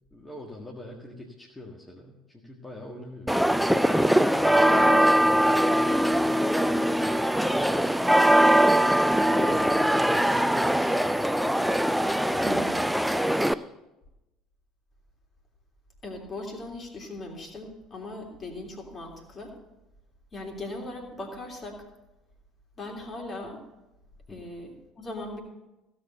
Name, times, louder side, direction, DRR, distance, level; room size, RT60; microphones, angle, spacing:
voice 1, 0.1-3.7 4.1-6.0 9.4-12.0 12.3-12.6 13.0-13.6 24.3-24.4, left 1 dB, 15° left, -2 dB, 1.8 m, -45 dB
sound 1, 3.3-13.5, right 1 dB, ahead, 0.4 m, -22 dB
voice 2, 4.7-5.0 9.3-9.7 12.4-12.7 16.0-19.6 20.3-21.8 22.8-23.6 24.3-25.4, left 2 dB, 30° left, 1 dB, 3.3 m, -38 dB
16.0 x 7.1 x 6.7 m, 0.97 s
figure-of-eight pair, 60°, 0 cm